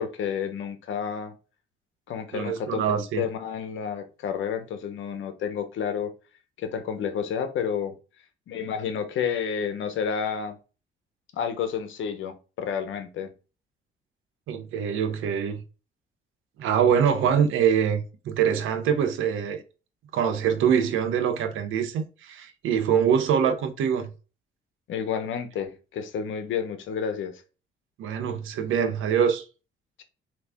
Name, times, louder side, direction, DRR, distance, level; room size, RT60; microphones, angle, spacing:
voice 1, 0.0-1.3 2.1-6.1 6.6-8.0 8.5-10.5 11.3-13.3 24.9-27.3, left 7 dB, 75° left, 1.1 m, -30 dB
voice 2, 2.3-3.2 14.5-15.6 16.6-19.6 20.1-24.1 28.0-29.4, right 8 dB, 90° right, 0.9 m, -24 dB
4.2 x 3.2 x 3.5 m
cardioid pair, 90°, 20 cm